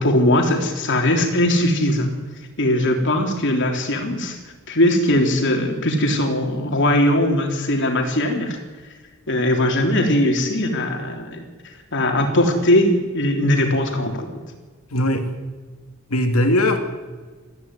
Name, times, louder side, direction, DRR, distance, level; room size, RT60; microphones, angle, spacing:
voice 1, 0.0-2.1 2.6-4.4 4.7-8.6 9.3-14.3, left 1 dB, 60° left, 3 dB, 3.5 m, -20 dB
voice 2, 14.9-15.2 16.1-16.8, left 1 dB, 85° left, 5 dB, 2.8 m, -19 dB
20.0 x 14.5 x 9.7 m, 1.4 s
head